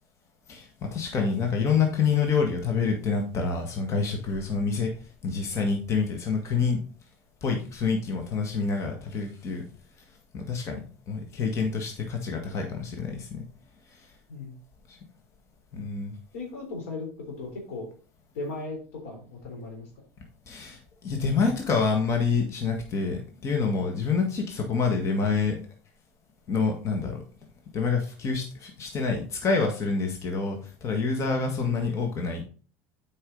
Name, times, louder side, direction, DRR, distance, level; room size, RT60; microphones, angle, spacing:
voice 1, 0.5-4.9 5.2-6.8 7.4-9.6 10.3-10.8 11.1-13.4 14.9-15.0 15.7-16.1 20.5-25.6 26.5-27.2 27.7-32.4, left 5 dB, 45° left, 3 dB, 1.8 m, -27 dB
voice 2, 16.3-17.9 18.4-19.9 31.6-31.8, left 3 dB, 90° left, 1 dB, 3.6 m, -37 dB
8.0 x 5.5 x 3.9 m, 0.38 s
supercardioid pair, 105°, 7 cm